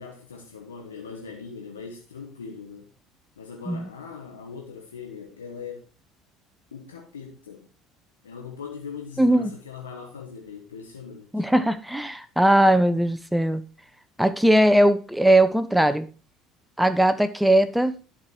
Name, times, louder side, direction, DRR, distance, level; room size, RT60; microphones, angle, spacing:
voice 1, 0.0-2.9 3.4-5.9 6.7-7.7 8.2-11.5, left 5 dB, 90° left, 1.1 m, -40 dB
voice 2, 9.2-9.5 11.3-13.6 14.2-16.1 16.8-17.9, right 1 dB, 5° right, 0.8 m, -19 dB
11.0 x 4.9 x 4.4 m
hypercardioid pair, 65°, 0 cm